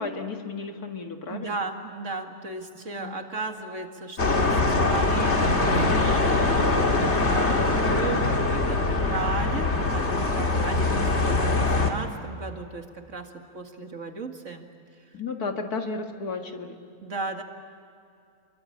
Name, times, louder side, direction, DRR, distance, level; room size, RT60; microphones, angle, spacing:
voice 1, 0.0-1.6 3.0-3.2 7.2-7.6 10.7-11.1 15.1-16.8, left 4 dB, 85° left, 4 dB, 2.6 m, -34 dB
voice 2, 1.3-8.8 9.1-14.7 17.0-17.4, right 3 dB, 55° right, 4 dB, 2.3 m, -35 dB
sound 1, 4.2-11.9, left 2 dB, 50° left, 2.4 m, -23 dB
28.5 x 23.5 x 8.7 m, 2.5 s
omnidirectional pair, 1.6 m